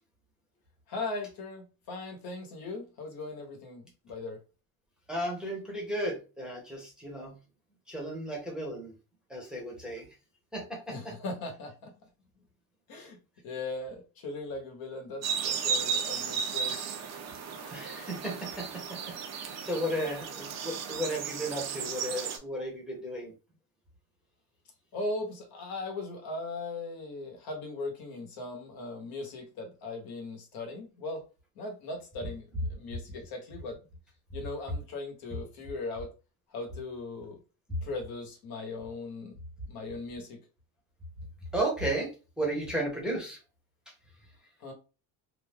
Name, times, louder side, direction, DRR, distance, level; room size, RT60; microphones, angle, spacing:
voice 1, 0.9-4.4 10.9-11.9 12.9-16.8 24.9-31.2 31.6-33.8 34.3-36.1 36.5-37.4 37.8-39.4 39.7-40.4 44.6-44.7, left 2 dB, 55° left, 2 dB, 1.1 m, -39 dB
voice 2, 5.1-7.3 7.9-8.9 9.3-10.1 10.5-11.1 17.7-19.0 19.3-23.3 41.5-42.1 42.4-43.4, right 1 dB, ahead, -3 dB, 0.9 m, -34 dB
sound 1, 15.2-22.4, right 6 dB, 40° right, 0.6 m, -34 dB
2.7 x 2.3 x 3.5 m, 0.33 s
cardioid pair, 150°, 43 cm